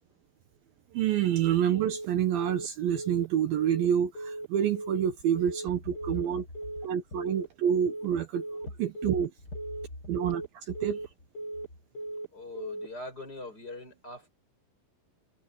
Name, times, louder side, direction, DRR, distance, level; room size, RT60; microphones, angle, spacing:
voice 1, 0.9-6.5 6.8-8.4 8.8-9.3 10.1-11.0, right 9 dB, 70° right, 2.8 m, -28 dB
Telephone, 1.8-2.1 2.4-2.7 3.0-3.3 3.6-3.9 4.2-4.5 4.8-5.1 5.4-5.7 6.0-6.3 6.6-6.9 7.2-7.5 7.8-8.1 8.4-8.7 9.0-9.3 9.6-9.9 10.2-10.5 10.8-11.1 11.4-11.7 12.0-12.3 12.6-12.9, right 2 dB, 85° left, 6.9 m, -38 dB
voice 2, 12.3-14.3, left 2 dB, 25° left, 8.3 m, -41 dB
omnidirectional pair, 4.6 m